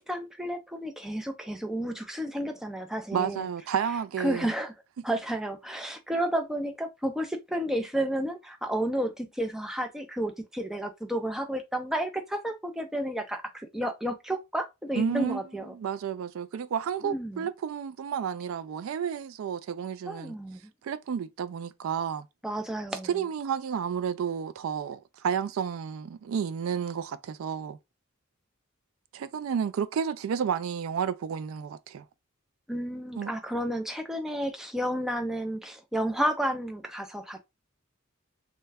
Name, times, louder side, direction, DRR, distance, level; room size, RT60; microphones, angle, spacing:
voice 1, 0.0-3.5 4.2-4.7 5.0-15.7 17.0-17.5 20.1-20.7 22.4-23.1 32.7-37.5, right 1 dB, ahead, 0.4 m, -31 dB
voice 2, 3.1-4.5 15.0-15.4 15.7-20.3 20.8-22.3 23.1-27.8 29.1-32.0 33.2-33.3, right 7 dB, 80° right, 0.3 m, -31 dB
3.2 x 2.2 x 3.3 m
head